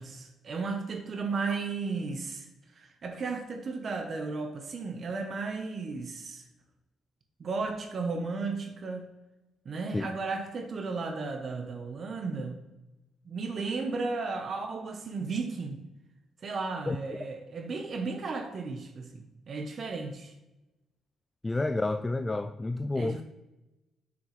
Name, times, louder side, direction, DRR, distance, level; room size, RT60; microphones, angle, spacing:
voice 1, 0.0-2.5 2.7-6.4 7.4-9.1 9.6-12.6 13.2-15.8 16.4-20.3 23.0-23.2, right 4 dB, 50° right, 5 dB, 0.9 m, -34 dB
voice 2, 21.4-23.2, left 2 dB, 20° left, 8 dB, 0.3 m, -29 dB
7.4 x 6.1 x 3.2 m, 1.0 s
cardioid pair, 90°, 0 cm